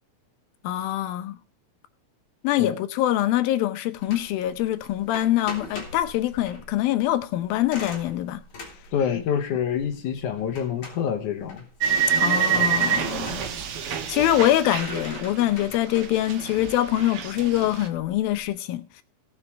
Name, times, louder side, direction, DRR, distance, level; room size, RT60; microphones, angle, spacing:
voice 1, 0.6-1.4 2.4-8.4 12.2-13.5 13.8-19.0, left 13 dB, 90° left, 2.7 m, -24 dB
sound 1, 4.0-18.5, left 2 dB, 40° left, 3.5 m, -43 dB
voice 2, 8.9-11.7, left 8 dB, 70° left, 2.3 m, -27 dB
sound 2, 11.8-15.7 16.0-17.9, right 8 dB, 65° right, 1.4 m, -26 dB
17.5 x 6.4 x 4.6 m
omnidirectional pair, 4.1 m